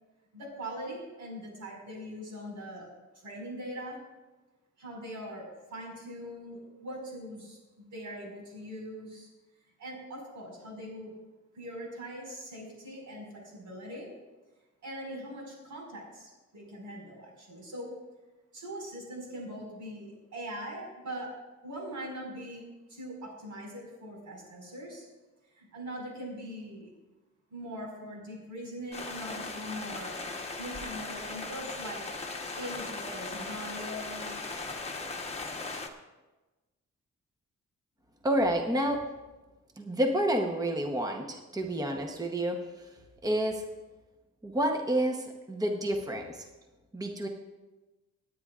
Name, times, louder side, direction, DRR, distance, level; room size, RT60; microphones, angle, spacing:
voice 1, 0.3-2.9 3.2-4.0 4.8-9.3 9.8-11.1 11.5-14.1 14.8-17.9 18.5-21.3 21.6-25.1 25.5-26.9 27.5-30.2 30.6-32.1 32.6-34.4, equal, 85° right, -2 dB, 5.2 m, -41 dB
sound 1, 28.9-35.9, left 3 dB, 20° left, 1.0 m, -38 dB
voice 2, 38.2-39.1 39.8-42.6 43.2-43.6 44.4-46.5 46.9-47.3, right 1 dB, 15° right, 3 dB, 0.9 m, -29 dB
27.0 x 9.3 x 2.4 m, 1.1 s
wide cardioid pair, 165°, 29 cm